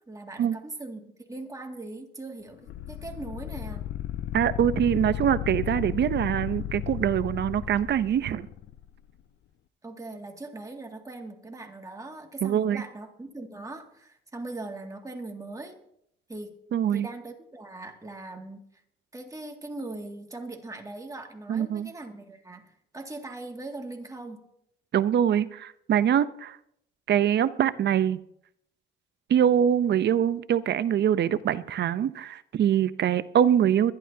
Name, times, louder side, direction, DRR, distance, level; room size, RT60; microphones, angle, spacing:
voice 1, 0.1-3.8 9.8-15.8 16.3-16.6 16.9-18.6 19.1-24.5, right 2 dB, 15° right, 2 dB, 2.2 m, -40 dB
sound 1, 2.7-8.8, left 11 dB, 65° left, 0.6 m, -34 dB
voice 2, 4.3-8.5 12.4-12.8 16.7-17.1 21.5-21.9 24.9-26.6 27.1-28.2 29.3-33.9, right 9 dB, 60° right, 15 dB, 0.7 m, -24 dB
22.5 x 11.5 x 2.8 m, 0.73 s
cardioid pair, 90°, 20 cm